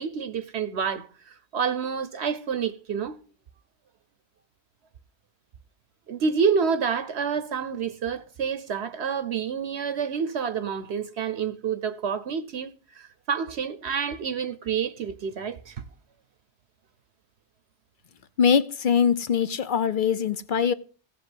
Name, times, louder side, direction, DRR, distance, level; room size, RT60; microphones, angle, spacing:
voice 1, 0.0-3.2 6.1-15.8, right 6 dB, 65° right, 1.0 m, -28 dB
voice 2, 18.4-20.7, left 7 dB, 50° left, 0.8 m, -22 dB
15.0 x 5.1 x 7.9 m
omnidirectional pair, 1.2 m